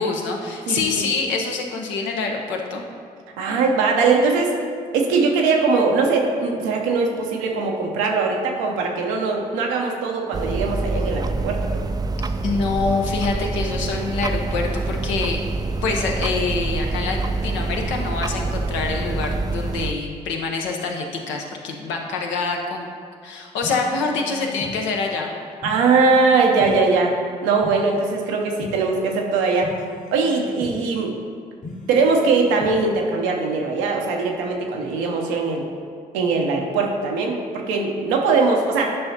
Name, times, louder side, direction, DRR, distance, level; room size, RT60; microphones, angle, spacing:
voice 1, 0.0-2.8 12.4-15.4 15.8-22.9 23.2-25.3, left 4 dB, 75° left, 1 dB, 0.8 m, -25 dB
voice 2, 0.7-1.0 3.4-4.5 4.9-11.6 25.6-27.1 27.4-29.7 30.1-31.1 31.9-35.7 36.1-38.9, right 4 dB, 85° right, 1 dB, 0.7 m, -21 dB
sound 1, 10.3-19.9, right 3 dB, 20° right, 0.3 m, -26 dB
sound 2, 23.6-24.7 25.6-26.7 27.6-28.7 29.6-30.7 31.6-32.7, left 2 dB, 40° left, 1.2 m, -38 dB
8.6 x 5.5 x 2.8 m, 2.2 s
hypercardioid pair, 45°, 19 cm